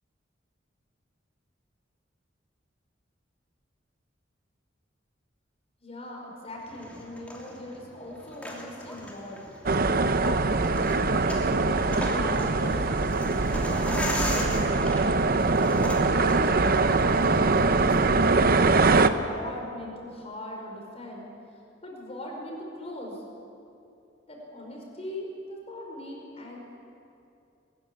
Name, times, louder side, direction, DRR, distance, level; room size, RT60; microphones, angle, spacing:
voice 1, 5.8-9.4 10.2-10.4 11.2-13.2 13.9-14.8 15.5-18.2 18.8-21.3 21.8-23.2 24.3-26.6, left 1 dB, 35° left, -1 dB, 5.2 m, -40 dB
sound 1, 6.6-17.5, left 1 dB, 10° left, 2.9 m, -38 dB
sound 2, 9.7-19.1, right 3 dB, 50° right, 0.8 m, -23 dB
22.0 x 14.5 x 10.0 m, 2.6 s
head